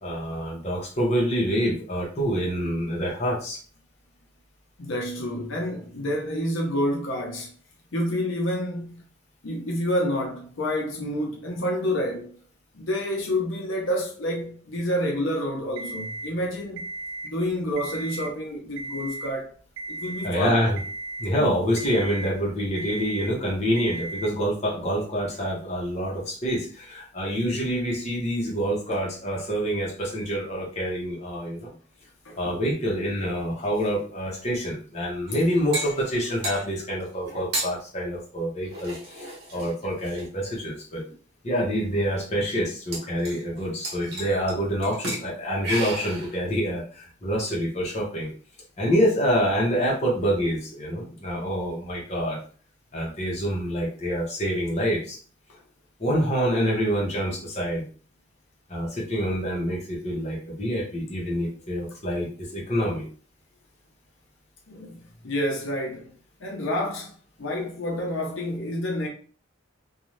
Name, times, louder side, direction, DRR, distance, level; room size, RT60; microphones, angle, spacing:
voice 1, 0.0-3.6 20.2-20.8 21.2-31.7 32.4-41.0 41.4-48.3 48.8-52.4 52.9-55.2 56.0-57.9 58.7-63.1, equal, 35° left, 0.8 m, -26 dB
voice 2, 4.8-7.5 7.9-9.0 9.4-12.3 12.7-16.9 17.2-19.5 19.9-20.6 21.4-21.5 32.2-32.5 64.7-66.1 66.4-67.1 67.4-69.1, left 1 dB, 70° left, 0.7 m, -28 dB
Alarm, 15.8-16.3 16.8-17.3 17.7-18.3 18.8-19.3 19.8-20.3 20.8-21.3 21.8-22.3 22.8-23.3 23.8-24.3, right 2 dB, 85° right, 0.5 m, -35 dB
sound 1, 35.3-36.7 37.3-37.7 38.7-40.3 41.1-41.2 41.6-41.7 41.9-42.0 42.9-43.6 43.8-44.5 44.8-45.3 45.6-46.4, right 1 dB, 55° right, 0.9 m, -33 dB
2.6 x 2.3 x 3.1 m
head